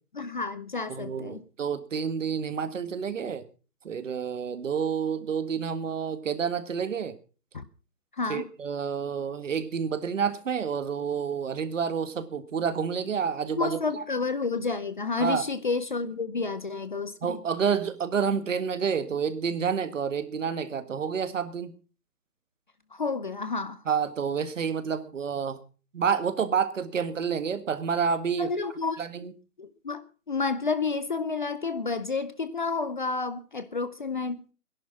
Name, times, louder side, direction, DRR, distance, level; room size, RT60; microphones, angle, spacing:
voice 1, 0.1-1.4 7.5-7.6 8.2-8.5 13.5-17.4 22.9-23.8 28.4-29.0 29.6-34.4, left 4 dB, 30° left, 0.7 m, -30 dB
voice 2, 0.9-3.4 3.9-7.2 8.3-14.0 15.2-15.4 17.2-21.7 23.9-25.6 25.9-28.6 29.0-29.3, right 6 dB, 50° right, 1.8 m, -29 dB
18.0 x 11.0 x 5.9 m
hypercardioid pair, 155°, 46 cm